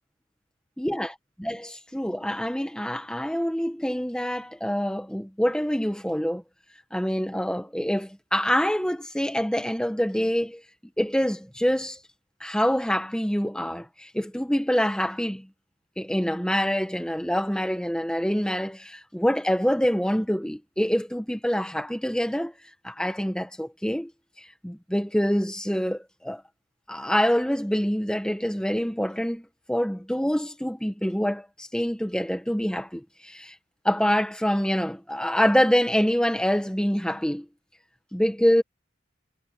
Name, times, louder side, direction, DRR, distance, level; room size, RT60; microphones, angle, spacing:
voice 1, 0.8-1.1 1.4-6.4 6.9-10.6 11.0-12.0 12.4-15.5 16.0-22.5 22.8-24.1 24.4-26.4 26.9-33.6 33.8-37.4 38.1-38.6, equal, 5° left, 1.0 m, -26 dB
head